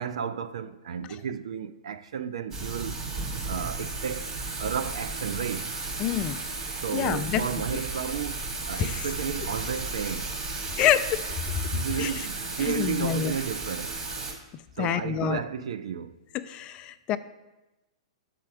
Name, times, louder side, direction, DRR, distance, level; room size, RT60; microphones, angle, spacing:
voice 1, 0.0-3.0 3.4-4.3 4.6-5.7 6.7-10.4 11.7-13.9 14.8-16.2, right 8 dB, 75° right, 0.4 m, -33 dB
Thunder / Rain, 2.5-14.3, right 3 dB, 30° right, 2.4 m, -34 dB
voice 2, 6.0-6.4 6.9-7.4 8.8-9.0 10.8-11.2 12.0-12.1 12.7-13.4 14.8-15.4 16.4-17.2, left 10 dB, 30° left, 0.4 m, -26 dB
7.6 x 4.3 x 4.8 m
hypercardioid pair, 130°, 3 cm